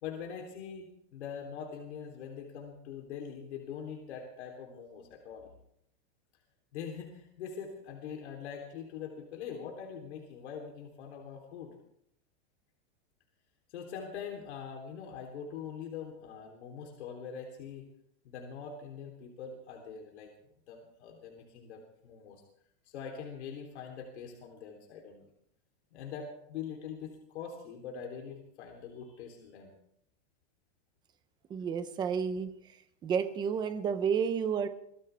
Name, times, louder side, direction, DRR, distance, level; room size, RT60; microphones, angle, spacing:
voice 1, 0.0-5.5 6.7-11.7 13.7-17.9 18.2-20.3 20.7-22.4 22.9-25.3 25.9-29.7, left 7 dB, 70° left, 1 dB, 3.5 m, -43 dB
voice 2, 31.5-32.5 33.0-34.7, right 7 dB, 10° right, 10 dB, 0.7 m, -30 dB
23.5 x 17.5 x 3.5 m, 0.73 s
supercardioid pair, 175°, 35 cm